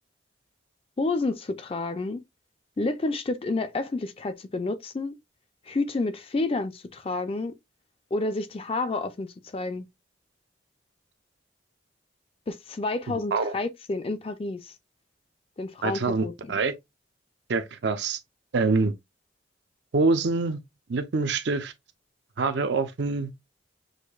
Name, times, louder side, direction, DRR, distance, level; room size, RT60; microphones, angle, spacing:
voice 1, 1.0-2.2 2.8-5.1 5.7-7.5 8.1-9.9 12.5-14.7 15.6-16.6, left 3 dB, 30° left, 0.4 m, -30 dB
voice 2, 13.1-13.6 15.8-16.7 17.5-18.2 18.5-18.9 19.9-20.6 20.9-21.7 22.4-23.3, right 3 dB, 65° right, 0.5 m, -25 dB
6.4 x 2.6 x 2.3 m
head